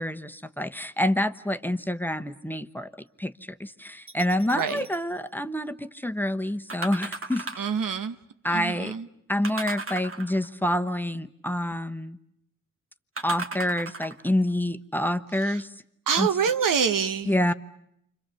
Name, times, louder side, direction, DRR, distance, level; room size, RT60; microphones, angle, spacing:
voice 1, 0.0-2.9 3.2-3.3 3.6-7.7 8.4-8.9 9.3-12.2 13.2-15.7 16.2-16.3 17.3-17.5, left 1 dB, 5° left, 1.0 m, -27 dB
sound 1, 4.1-5.0 6.7-7.8 9.4-10.6 13.2-14.3 15.0-15.1, right 3 dB, 40° right, 1.8 m, -36 dB
voice 2, 4.5-4.9 7.6-8.2 8.5-9.1 15.4-15.6 16.1-17.3, right 7 dB, 80° right, 1.1 m, -26 dB
29.5 x 25.5 x 6.9 m
cardioid pair, 70°, 32 cm